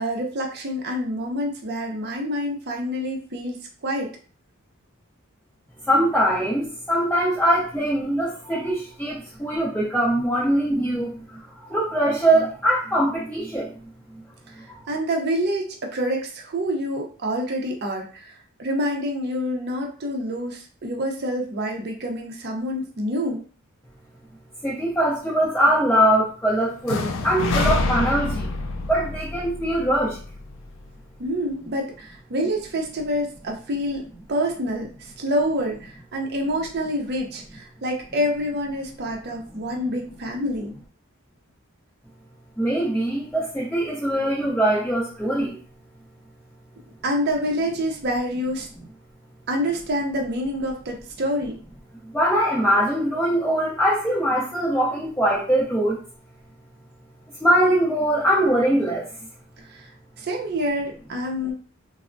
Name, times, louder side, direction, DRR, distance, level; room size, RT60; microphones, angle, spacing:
voice 1, 0.0-4.1 14.5-23.4 31.2-40.8 47.0-48.7 49.5-51.6 59.7-59.9 60.2-61.5, equal, 50° right, 1 dB, 0.5 m, -27 dB
voice 2, 5.9-13.7 14.7-14.8 24.6-28.5 28.9-30.2 42.6-45.6 52.1-56.0 57.4-59.1, right 1 dB, 5° left, -7 dB, 0.5 m, -22 dB
sound 1, 26.9-30.8, left 3 dB, 65° left, 0.4 m, -27 dB
3.3 x 2.0 x 2.5 m, 0.40 s
head